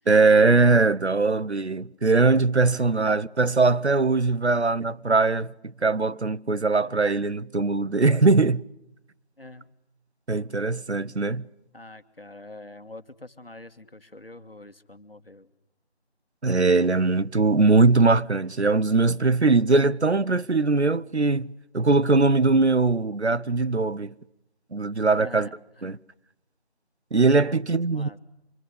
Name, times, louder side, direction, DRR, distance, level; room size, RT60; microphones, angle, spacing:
voice 1, 0.1-5.5 5.8-8.6 10.3-11.5 16.4-24.1 24.7-25.5 25.8-26.0 27.1-28.2, right 3 dB, 80° right, 1.0 m, -21 dB
voice 2, 2.7-3.1 6.7-6.9 9.4-9.8 11.7-15.5 25.1-26.0 27.4-28.2, left 2 dB, 60° left, 1.8 m, -45 dB
25.5 x 25.0 x 8.4 m
figure-of-eight pair, 180°, 33 cm